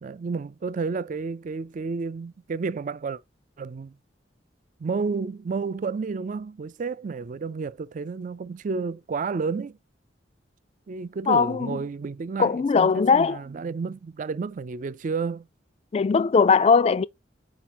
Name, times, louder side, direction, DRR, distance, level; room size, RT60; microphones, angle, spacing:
voice 1, 0.0-3.2 3.6-3.9 4.8-9.8 10.9-15.5, right 4 dB, 45° right, 0.4 m, -31 dB
voice 2, 11.3-11.7 12.4-13.4 15.9-17.1, left 5 dB, 35° left, 0.3 m, -19 dB
5.0 x 4.7 x 5.9 m
head